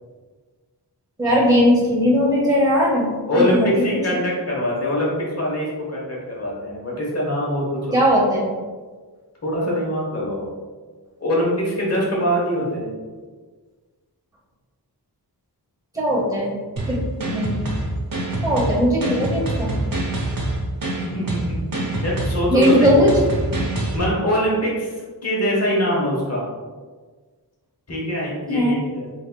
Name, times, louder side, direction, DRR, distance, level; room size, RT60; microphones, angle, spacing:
voice 1, 1.2-3.1 3.3-3.7 7.9-8.5 15.9-16.5 16.9-17.6 18.4-19.7 22.5-23.1 28.5-28.8, equal, 10° right, -4 dB, 0.9 m, -18 dB
voice 2, 3.3-8.0 9.4-10.5 11.2-13.0 21.1-22.9 23.9-24.9 25.2-26.5 27.9-29.1, equal, 35° left, -4 dB, 1.0 m, -23 dB
sound 1, 16.8-24.0, right 2 dB, 55° right, 0.8 m, -25 dB
3.5 x 3.4 x 2.2 m, 1.4 s
wide cardioid pair, 50°, 41 cm